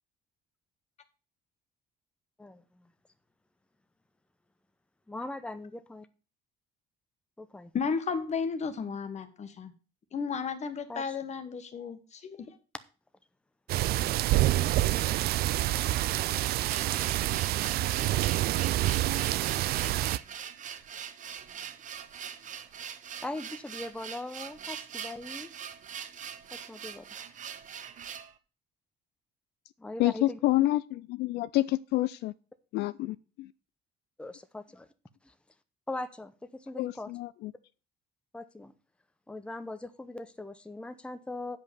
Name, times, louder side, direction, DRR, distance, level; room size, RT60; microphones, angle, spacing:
voice 1, 2.4-2.9 5.1-6.1 7.4-7.7 10.9-11.2 23.2-25.5 26.5-27.1 29.8-30.4 34.2-34.9 35.2-35.3 35.9-37.1 38.3-38.7 39.3-41.6, left 2 dB, 5° left, 0.8 m, -40 dB
voice 2, 7.7-9.7 10.1-12.6, left 5 dB, 40° left, 1.5 m, -33 dB
sound 1, 13.7-20.2, right 15 dB, 65° right, 0.4 m, -27 dB
sound 2, 16.2-28.3, right 8 dB, 50° right, 1.0 m, -42 dB
voice 3, 30.0-32.3 32.7-33.5 36.8-37.5, left 16 dB, 80° left, 0.4 m, -28 dB
8.7 x 5.2 x 6.9 m
cardioid pair, 110°, 17 cm